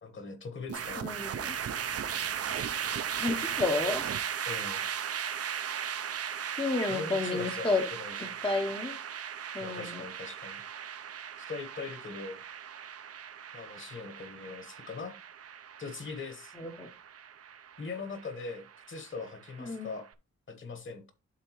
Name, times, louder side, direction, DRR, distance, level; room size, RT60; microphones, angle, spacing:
voice 1, 0.0-1.1 4.4-4.8 6.9-8.3 9.6-10.6 11.4-12.4 13.5-15.1 15.8-16.5 17.8-20.1 20.5-21.1, left 4 dB, 40° left, 8 dB, 1.2 m, -41 dB
Rise ( woosh ), 0.7-19.9, right 8 dB, 55° right, 0.5 m, -37 dB
voice 2, 1.0-1.5 3.2-4.0 6.6-7.8 8.4-8.9 9.5-10.0 16.6-16.9 19.6-19.9, left 3 dB, 15° left, 3 dB, 0.7 m, -31 dB
11.5 x 3.9 x 3.0 m, 0.30 s
wide cardioid pair, 160°, 29 cm